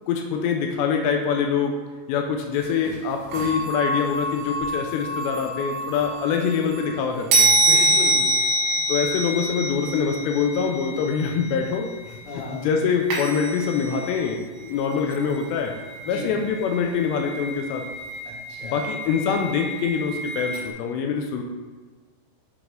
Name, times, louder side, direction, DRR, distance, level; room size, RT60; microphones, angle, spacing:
voice 1, 0.1-1.8 2.1-7.5 8.9-15.7 16.1-17.9 18.6-21.4, left 6 dB, 90° left, 3 dB, 2.5 m, -25 dB
sound 1, 2.6-2.7 2.9-3.0 3.3-6.9 7.3-12.5 13.1-14.3 14.6-20.7, right 1 dB, 65° right, 3.0 m, -26 dB
voice 2, 7.6-8.2 12.3-12.6 16.0-16.3 18.2-18.8, left 2 dB, 60° left, -6 dB, 3.0 m, -34 dB
8.4 x 4.0 x 3.8 m, 1.4 s
omnidirectional pair, 5.7 m